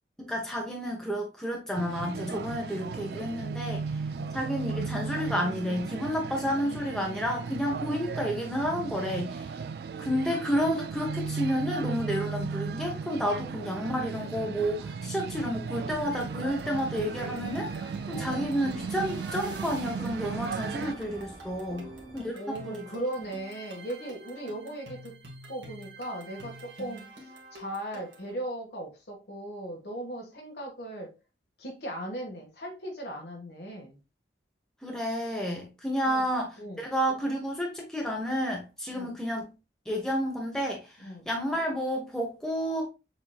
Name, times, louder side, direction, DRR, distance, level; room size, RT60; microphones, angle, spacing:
voice 1, 0.2-3.8 4.3-9.6 10.0-22.8 34.8-39.5 39.9-42.9, equal, 5° left, 0.9 m, -31 dB
sound 1, 1.7-20.9, right 5 dB, 60° right, 0.3 m, -36 dB
sound 2, 14.4-22.3, right 1 dB, 25° right, 1.3 m, -49 dB
sound 3, 16.0-28.3, right 1 dB, 75° right, 1.5 m, -48 dB
voice 2, 21.7-25.2 25.5-31.1 31.6-34.0 36.1-36.2 36.6-36.9 38.9-39.1 41.0-41.3, right 1 dB, 60° left, 1.6 m, -38 dB
6.8 x 2.9 x 2.3 m
head